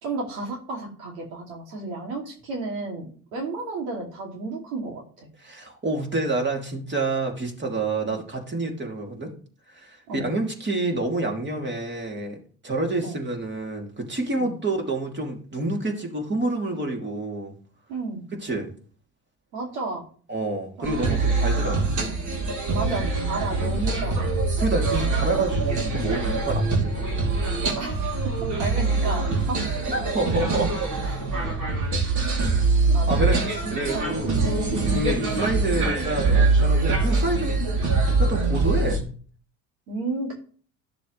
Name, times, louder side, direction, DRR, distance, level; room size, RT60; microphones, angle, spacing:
voice 1, 0.0-5.3 8.0-8.2 10.1-10.3 13.0-13.2 14.4-14.6 17.9-18.2 19.5-20.0 20.8-21.5 22.0-22.2 22.7-24.3 27.7-29.6 31.0-31.2 32.9-34.1 34.4-34.6 37.7-37.9 39.9-40.3, right 3 dB, 85° right, 1 dB, 2.6 m, -33 dB
voice 2, 5.4-9.3 9.7-12.4 12.6-17.5 18.3-18.7 20.3-21.9 24.6-27.1 29.9-30.9 32.9-34.4 34.9-37.6 38.2-39.0, right 2 dB, 25° right, 2 dB, 2.8 m, -28 dB
sound 1, 20.8-39.0, right 3 dB, 45° right, 3.1 m, -23 dB
12.5 x 6.8 x 3.2 m, 0.43 s
hypercardioid pair, 75°, 41 cm